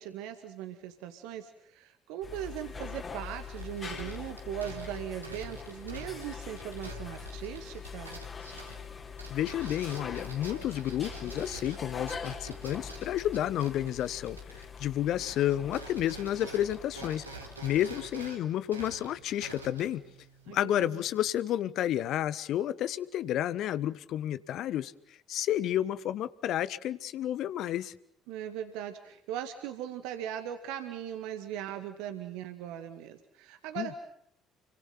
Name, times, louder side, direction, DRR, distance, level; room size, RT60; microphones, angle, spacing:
voice 1, 0.0-8.2 20.5-21.0 28.3-34.0, right 10 dB, 65° right, 8 dB, 2.0 m, -39 dB
sound 1, 2.2-18.3, left 6 dB, 35° left, 4.0 m, -43 dB
sound 2, 3.3-14.9 15.2-21.3, right 3 dB, 90° right, 3.5 m, -47 dB
voice 2, 9.3-17.3 17.6-20.0 20.5-24.9 25.3-27.9 33.7-34.0, left 12 dB, 55° left, 16 dB, 1.2 m, -31 dB
30.0 x 24.5 x 5.8 m, 0.73 s
figure-of-eight pair, 50°, 0 cm